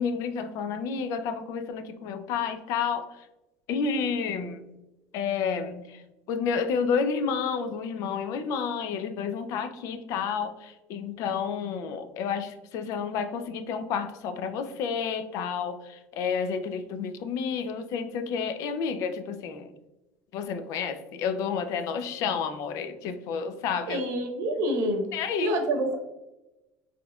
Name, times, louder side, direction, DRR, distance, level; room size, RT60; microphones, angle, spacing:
voice 1, 0.0-3.1 3.7-4.7 5.1-6.0 6.3-19.7 20.3-24.0 25.1-25.5, left 6 dB, 65° left, 9 dB, 0.4 m, -30 dB
voice 2, 23.9-25.1 25.4-26.0, right 1 dB, 70° right, 3 dB, 0.8 m, -27 dB
4.1 x 3.0 x 2.2 m, 0.98 s
supercardioid pair, 100°, 6 cm